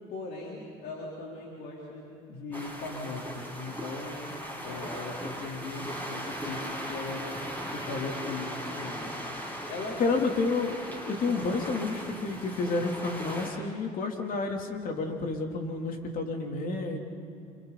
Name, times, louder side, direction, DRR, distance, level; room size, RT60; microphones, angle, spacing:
voice 1, 0.1-4.3 4.6-7.4 7.7-9.2 9.7-10.3, left 3 dB, 70° left, -3 dB, 4.1 m, -38 dB
sound 1, 2.5-13.5, equal, 10° left, 6.3 m, -38 dB
voice 2, 10.0-10.7 11.0-17.0, left 3 dB, 50° left, 2 dB, 3.4 m, -30 dB
29.0 x 27.0 x 4.2 m, 2.5 s
supercardioid pair, 85°, 18 cm